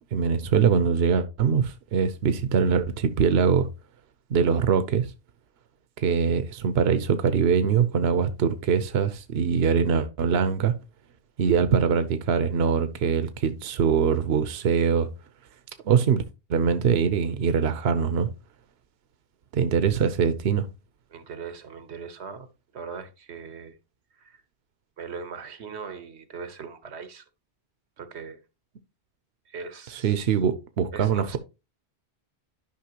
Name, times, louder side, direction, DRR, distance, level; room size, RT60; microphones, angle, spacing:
voice 1, 0.1-3.7 4.3-5.1 6.0-10.7 11.4-15.1 15.8-16.2 16.5-18.3 19.5-20.7 29.9-31.4, right 6 dB, 75° right, 1.0 m, -23 dB
voice 2, 21.1-23.8 24.2-24.4 25.0-27.2 28.0-28.4 29.5-30.2 30.9-31.4, right 5 dB, 90° right, 1.3 m, -40 dB
11.5 x 5.5 x 2.9 m
omnidirectional pair, 1.1 m